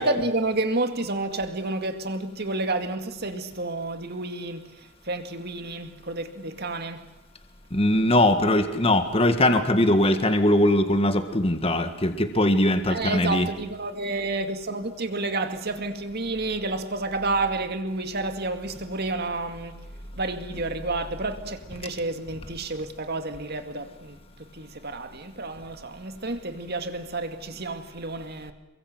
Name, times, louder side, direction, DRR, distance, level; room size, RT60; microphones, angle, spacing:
voice 1, 0.0-7.1 12.9-19.7 20.1-24.2 24.5-28.5, right 2 dB, 50° right, 2.3 m, -30 dB
voice 2, 7.7-13.5, left 1 dB, 25° left, 1.9 m, -21 dB
28.5 x 23.0 x 8.0 m
head